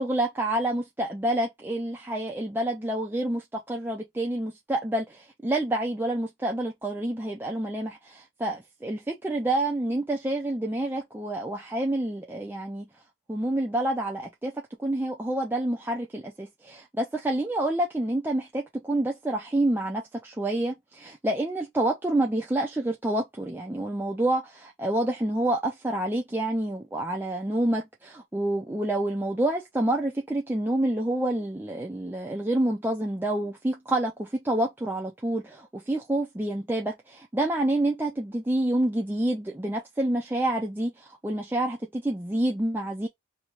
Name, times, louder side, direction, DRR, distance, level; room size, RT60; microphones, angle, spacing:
voice 1, 0.0-12.9 13.3-14.5 14.8-43.1, right 1 dB, 10° right, 0.4 m, -28 dB
2.8 x 2.7 x 4.3 m
head